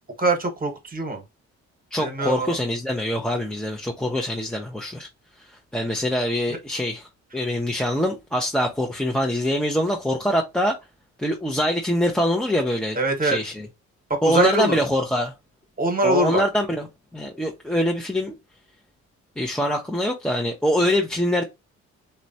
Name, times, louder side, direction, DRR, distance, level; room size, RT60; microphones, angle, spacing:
voice 1, 0.2-1.2 2.0-2.6 6.5-6.6 12.9-13.4 14.1-14.8 15.8-16.4, right 2 dB, 30° right, 1.0 m, -23 dB
voice 2, 1.9-5.1 5.4-10.8 11.2-13.0 13.2-13.7 14.2-15.3 16.0-16.9 17.1-18.3 19.4-21.4, equal, 5° left, 0.5 m, -24 dB
3.0 x 2.2 x 2.6 m
cardioid pair, 90°, 30 cm